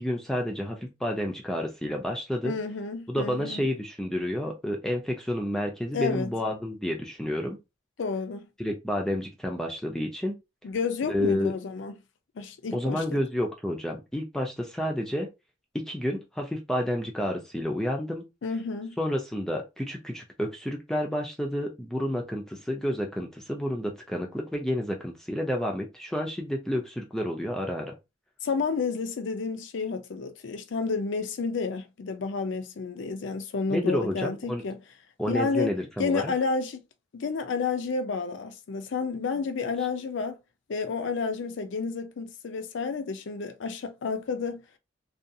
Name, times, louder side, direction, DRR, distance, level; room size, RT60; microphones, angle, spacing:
voice 1, 0.0-2.5 3.1-7.6 8.6-10.3 11.1-11.5 12.7-15.3 15.7-18.2 19.0-27.9 33.7-34.6 35.2-36.3, equal, 5° left, 0.3 m, -30 dB
voice 2, 2.4-3.6 5.9-6.3 8.0-8.5 10.6-11.9 12.4-13.2 18.4-19.0 28.4-34.8 35.3-35.7 36.0-36.8 37.1-40.4 40.7-44.6, left 4 dB, 70° left, 0.4 m, -30 dB
2.5 x 2.3 x 2.6 m
head